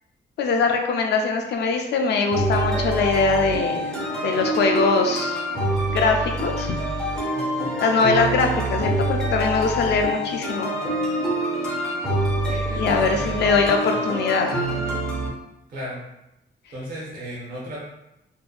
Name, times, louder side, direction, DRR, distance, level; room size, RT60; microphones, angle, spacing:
voice 1, 0.4-3.8 4.2-5.4 5.9-6.8 7.8-10.7 12.8-14.7, left 4 dB, 65° left, 3 dB, 0.4 m, -22 dB
sound 1, 2.3-15.3, right 1 dB, 5° left, 0.5 m, -25 dB
voice 2, 7.3-7.7 12.4-14.0 15.7-16.0 16.7-17.8, equal, 50° right, -6 dB, 0.7 m, -36 dB
2.6 x 2.2 x 2.3 m, 0.87 s
wide cardioid pair, 175°, 19 cm